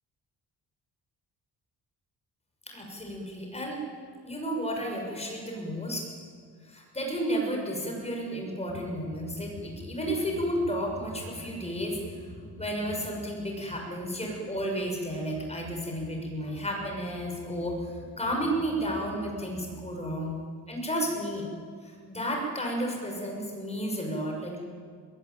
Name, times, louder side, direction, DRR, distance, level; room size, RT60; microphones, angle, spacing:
voice 1, 2.7-3.8 4.2-6.1 6.6-12.0 12.6-20.4 20.7-21.5 21.8-24.6, equal, 15° left, 1 dB, 6.3 m, -32 dB
sound 1, 8.7-19.9, equal, 85° left, 7.3 m, -47 dB
22.0 x 21.0 x 9.2 m, 2.1 s
cardioid pair, 120°, 37 cm